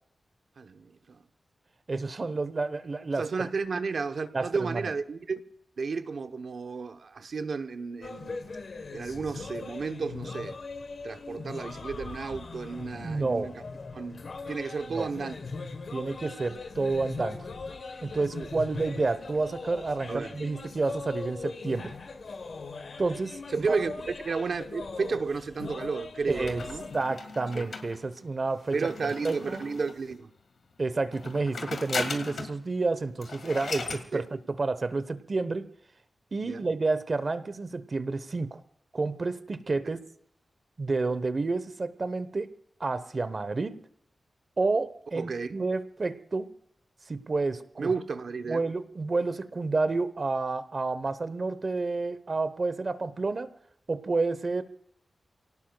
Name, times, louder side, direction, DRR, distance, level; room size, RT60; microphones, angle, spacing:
voice 1, 0.6-1.2 3.2-5.4 5.8-8.4 8.9-10.6 11.0-13.6 13.9-15.3 18.3-18.5 20.1-20.3 23.5-26.9 27.5-27.7 28.7-30.3 34.1-34.2 36.4-36.7 45.1-45.6 47.8-48.6, right 4 dB, 70° right, 8 dB, 0.9 m, -32 dB
voice 2, 1.9-3.5 4.3-4.9 13.0-13.5 14.9-15.1 15.9-17.5 18.0-21.9 23.0-23.8 26.3-26.6 26.9-28.8 29.2-29.6 30.8-35.7 36.3-38.6 38.9-40.0 40.8-42.5 42.8-43.8 44.6-46.5 47.1-47.9 48.5-53.5 53.9-54.6, right 3 dB, 40° right, 13 dB, 1.0 m, -30 dB
sound 1, 8.0-27.0, left 4 dB, 65° left, 1.2 m, -40 dB
sound 2, 26.5-30.1 31.1-32.6 32.9-33.0 33.2-34.1, left 4 dB, 85° left, 1.9 m, -38 dB
29.0 x 18.0 x 2.3 m, 0.68 s
wide cardioid pair, 115°, 0 cm